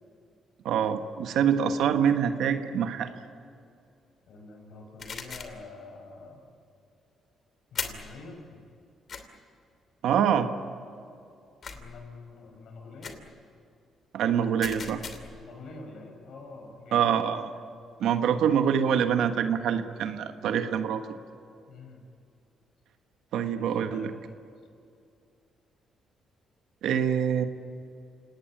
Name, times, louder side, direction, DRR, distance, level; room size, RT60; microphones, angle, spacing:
voice 1, 0.6-3.1 10.0-10.5 14.1-15.0 16.9-17.5 18.0-21.0 23.3-24.1 26.8-27.4, right 8 dB, 80° right, 8 dB, 1.4 m, -25 dB
voice 2, 4.3-6.4 7.7-8.7 11.7-13.2 15.3-17.2 21.7-22.0 23.6-24.2, left 3 dB, 70° left, 3 dB, 5.9 m, -46 dB
sound 1, 5.0-5.6 7.7-8.1 9.1-9.2 11.6-12.0 13.0-13.3 14.6-15.4, left 5 dB, 50° left, 2.8 m, -38 dB
28.5 x 18.5 x 9.1 m, 2.5 s
cardioid pair, 90°, 0 cm